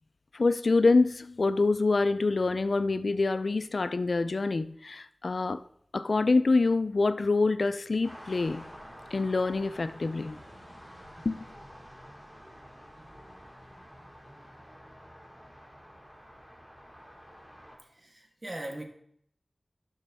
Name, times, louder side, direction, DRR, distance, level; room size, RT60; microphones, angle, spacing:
voice 1, 0.3-5.6 5.9-8.7 9.1-10.4 11.3-11.5, left 3 dB, 75° left, 0.3 m, -26 dB
sound 1, 8.0-17.8, equal, 15° right, 2.2 m, -49 dB
voice 2, 17.8-18.8, right 1 dB, 45° right, 1.3 m, -40 dB
10.5 x 6.2 x 3.5 m
wide cardioid pair, 45°, 0 cm